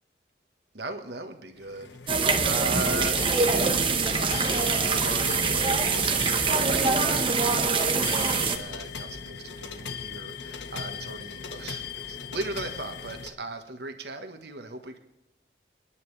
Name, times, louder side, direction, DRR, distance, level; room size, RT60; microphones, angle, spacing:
voice 1, 0.7-15.0, right 2 dB, 75° right, 6 dB, 1.5 m, -38 dB
sound 1, 1.5-13.3, left 6 dB, 90° left, 1.4 m, -38 dB
sound 2, 2.1-8.6, right 4 dB, 30° right, 1.2 m, -24 dB
28.0 x 10.5 x 3.4 m, 0.91 s
head